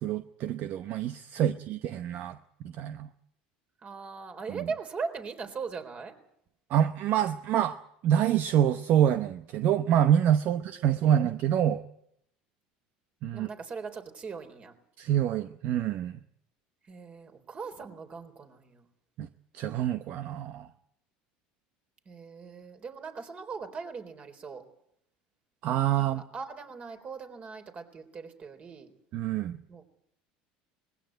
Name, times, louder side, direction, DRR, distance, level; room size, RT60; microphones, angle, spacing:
voice 1, 0.0-2.4 2.6-3.1 4.5-4.6 6.7-7.8 8.0-11.8 13.2-13.5 15.0-16.2 19.2-19.3 19.5-20.7 25.6-26.2 29.1-29.6, right 10 dB, 55° right, 11 dB, 0.9 m, -26 dB
voice 2, 3.8-6.1 10.4-11.5 13.3-14.7 16.8-18.8 22.1-24.6 26.0-28.9 29.7-30.0, right 5 dB, 35° right, 6 dB, 3.8 m, -40 dB
20.5 x 16.0 x 9.2 m, 0.75 s
supercardioid pair, 95°, 4 cm